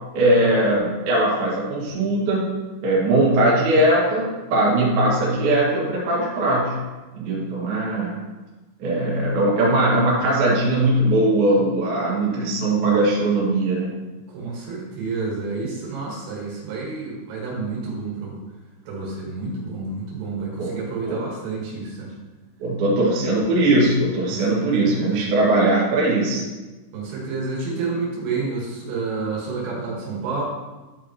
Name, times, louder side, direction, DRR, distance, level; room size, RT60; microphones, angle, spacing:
voice 1, 0.1-2.5 2.8-6.8 7.1-8.1 8.8-13.9 20.6-20.8 21.1-21.2 22.6-26.4, right 1 dB, 55° right, -6 dB, 3.4 m, -20 dB
voice 2, 14.3-18.4 18.9-22.1 24.3-25.3 26.9-30.4, right 4 dB, 80° right, -3 dB, 4.1 m, -29 dB
12.5 x 5.0 x 2.9 m, 1.2 s
omnidirectional pair, 6.0 m